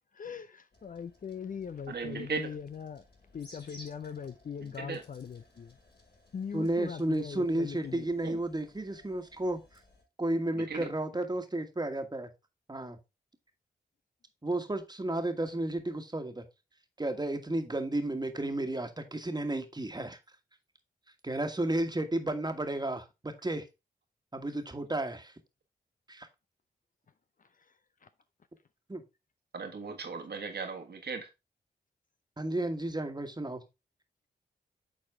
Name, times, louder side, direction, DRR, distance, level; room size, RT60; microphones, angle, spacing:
voice 1, 0.1-3.0 3.3-5.8 6.3-8.1 27.4-28.1, left 7 dB, 50° left, 0.5 m, -41 dB
sound 1, 0.7-10.0, left 1 dB, 65° left, 4.2 m, -59 dB
voice 2, 1.9-2.5 4.6-5.0 8.2-8.4 10.5-10.9 29.5-31.3, right 5 dB, 65° right, 1.7 m, -37 dB
voice 3, 6.5-9.8 10.2-12.3 12.7-13.0 14.4-16.4 17.0-20.1 21.2-23.7 24.3-25.3 26.1-26.3 28.9-29.0 32.4-33.6, right 1 dB, 20° right, 1.5 m, -32 dB
7.9 x 4.1 x 3.6 m
supercardioid pair, 40°, 18 cm